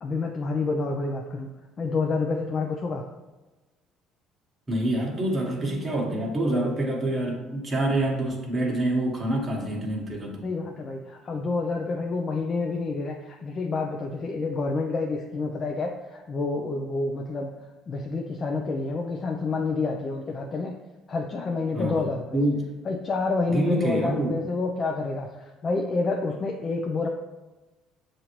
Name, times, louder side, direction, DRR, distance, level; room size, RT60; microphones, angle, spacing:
voice 1, 0.0-1.5 1.8-3.0 10.4-17.5 17.9-20.7 21.1-22.4 22.9-27.1, left 3 dB, 40° left, 1 dB, 0.5 m, -28 dB
voice 2, 4.7-10.5 21.7-22.0 22.3-22.7 23.5-24.3, right 1 dB, 25° right, -2 dB, 1.2 m, -26 dB
7.0 x 2.6 x 2.9 m, 1.2 s
supercardioid pair, 80°, 0 cm